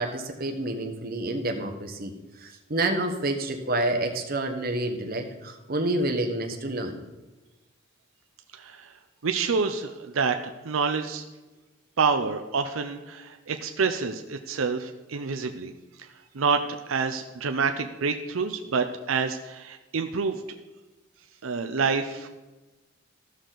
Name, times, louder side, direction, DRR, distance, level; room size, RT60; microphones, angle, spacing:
voice 1, 0.0-2.1 2.4-7.0, right 2 dB, 50° right, 4 dB, 1.2 m, -28 dB
voice 2, 8.6-8.9 9.2-11.2 12.0-15.7 16.3-16.6 16.9-20.4 21.4-22.3, right 5 dB, 85° right, 6 dB, 0.6 m, -27 dB
14.0 x 6.4 x 3.9 m, 1.1 s
head